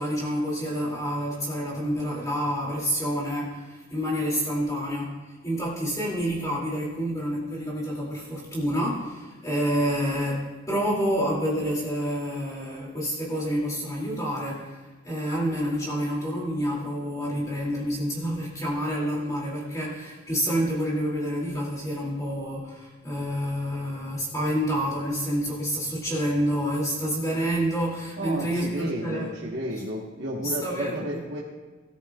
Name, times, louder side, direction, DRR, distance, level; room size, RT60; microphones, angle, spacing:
voice 1, 0.0-5.1 5.4-29.6 30.4-31.2, equal, 20° left, -4 dB, 2.4 m, -28 dB
voice 2, 28.2-31.4, equal, 60° right, -3 dB, 1.2 m, -32 dB
17.0 x 13.5 x 2.3 m, 1.3 s
head